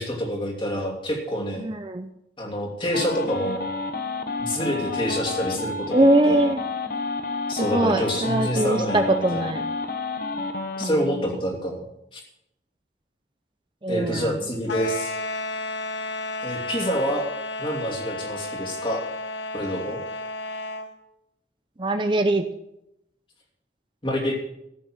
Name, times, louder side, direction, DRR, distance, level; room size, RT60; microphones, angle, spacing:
voice 1, 0.0-1.7 2.4-3.7 4.4-6.4 7.5-9.5 10.8-11.8 12.1-12.2 13.9-15.2 16.4-17.3 17.6-19.0 19.5-20.0 24.0-24.3, equal, 30° left, 0 dB, 2.8 m, -27 dB
voice 2, 1.6-2.1 5.9-6.6 7.6-9.7 10.8-11.1 13.8-14.4 21.8-22.5, right 1 dB, 25° right, 7 dB, 0.6 m, -22 dB
sound 1, 2.9-10.9, left 3 dB, 55° left, 1.2 m, -30 dB
sound 2, 14.6-20.9, left 2 dB, 85° left, 2.0 m, -32 dB
14.5 x 6.6 x 7.4 m, 0.82 s
head